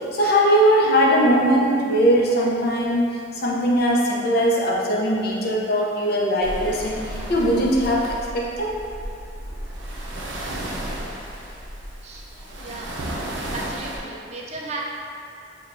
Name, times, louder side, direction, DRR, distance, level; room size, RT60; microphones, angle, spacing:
voice 1, 0.1-3.1 3.4-8.8, equal, 55° left, -4 dB, 0.6 m, -20 dB
sound 1, 6.4-14.0, right 1 dB, 90° right, 0.6 m, -33 dB
voice 2, 13.3-14.8, right 2 dB, 35° right, -2 dB, 0.4 m, -35 dB
5.7 x 2.2 x 2.5 m, 2.4 s
head